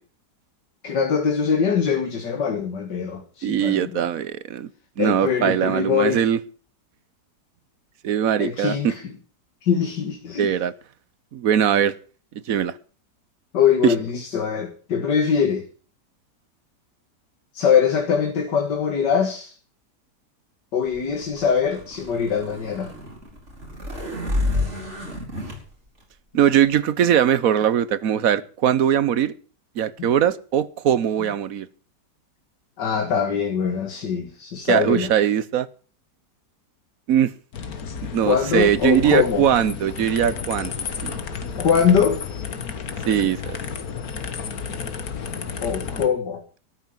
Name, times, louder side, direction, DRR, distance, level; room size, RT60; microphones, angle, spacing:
voice 1, 0.8-4.0 5.0-6.2 8.4-9.1 9.6-10.5 13.5-15.7 17.5-19.6 20.7-22.9 30.0-30.1 31.2-31.3 32.8-35.1 38.2-39.4 41.6-42.2 45.6-46.4, left 7 dB, 80° left, 2.2 m, -22 dB
voice 2, 3.4-4.7 5.0-6.4 8.0-8.9 10.4-10.7 11.3-11.9 12.5-12.7 13.8-13.9 26.3-29.3 29.8-31.7 34.7-35.7 37.1-37.3 38.0-41.2 43.1-43.6, right 9 dB, 60° right, 1.2 m, -21 dB
sound 1, 21.0-25.6, left 2 dB, 40° right, 4.9 m, -29 dB
sound 2, 37.5-46.1, left 6 dB, 60° left, 1.9 m, -32 dB
13.0 x 9.3 x 7.7 m
omnidirectional pair, 1.8 m